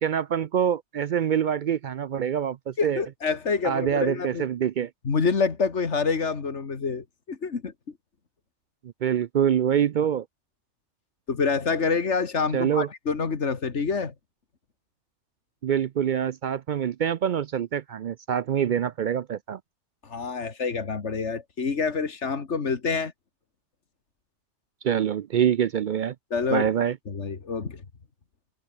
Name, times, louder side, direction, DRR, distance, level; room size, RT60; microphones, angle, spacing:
voice 1, 0.0-3.0 3.6-4.9 8.8-10.3 12.5-12.9 15.6-19.6 24.8-26.2 26.5-27.0, right 9 dB, 60° right, 0.5 m, -25 dB
voice 2, 2.8-4.4 5.0-7.7 11.3-14.1 20.0-23.1 26.3-26.7 27.1-27.8, left 5 dB, 90° left, 2.2 m, -27 dB
omnidirectional pair, 1.2 m